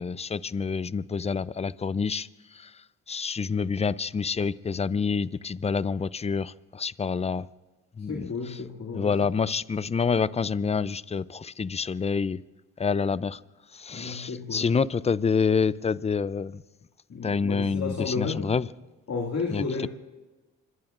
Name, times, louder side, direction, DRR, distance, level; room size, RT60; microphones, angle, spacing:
voice 1, 0.0-2.3 2.5-2.7 3.1-7.5 8.0-8.6 8.9-12.4 12.8-13.4 13.7-16.6 17.2-18.7 19.5-19.6, left 5 dB, 20° left, 19 dB, 0.4 m, -27 dB
voice 2, 8.1-9.1 13.9-14.7 17.1-18.5 19.1-19.9, left 4 dB, 50° left, 0 dB, 2.2 m, -32 dB
26.0 x 22.0 x 2.5 m, 1.2 s
supercardioid pair, 65°, 35 cm